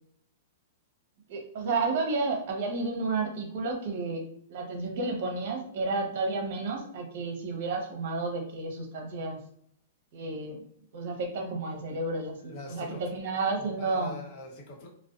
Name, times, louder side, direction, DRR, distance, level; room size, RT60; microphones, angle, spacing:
voice 1, 1.3-4.2 4.5-9.4 10.1-10.6 10.9-14.1, right 3 dB, 55° right, 2 dB, 0.7 m, -31 dB
voice 2, 12.5-13.0 13.5-14.9, left 3 dB, 45° left, -1 dB, 0.9 m, -42 dB
2.4 x 2.1 x 2.4 m, 0.66 s
hypercardioid pair, 145°, 0 cm